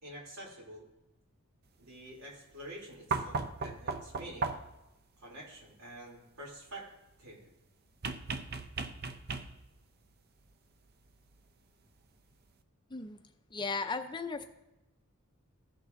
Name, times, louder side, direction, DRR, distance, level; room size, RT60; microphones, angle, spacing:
voice 1, 0.0-0.9 1.8-4.5 5.2-6.9 7.2-7.5, right 1 dB, 80° right, -2 dB, 3.0 m, -48 dB
sound 1, 3.1-4.9 8.0-9.8 11.3-11.4, right 4 dB, 45° right, 0.6 m, -36 dB
voice 2, 13.5-14.4, left 4 dB, 20° left, 7 dB, 0.5 m, -36 dB
15.5 x 6.5 x 2.6 m, 0.96 s
head